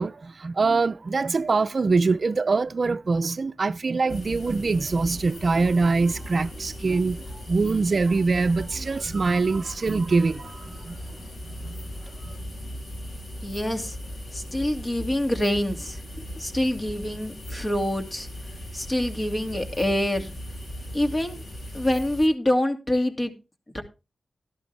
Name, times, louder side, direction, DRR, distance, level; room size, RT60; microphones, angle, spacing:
voice 1, 0.0-7.2 7.5-10.9, right 4 dB, 55° right, 0.5 m, -23 dB
sound 1, 4.1-22.3, equal, 65° left, 3.6 m, -38 dB
voice 2, 13.4-14.0 14.3-18.3 18.7-20.3 20.9-21.4 21.7-23.3 23.7-23.8, left 1 dB, 35° left, 2.4 m, -26 dB
12.0 x 11.5 x 3.3 m
cardioid pair, 50°, 0 cm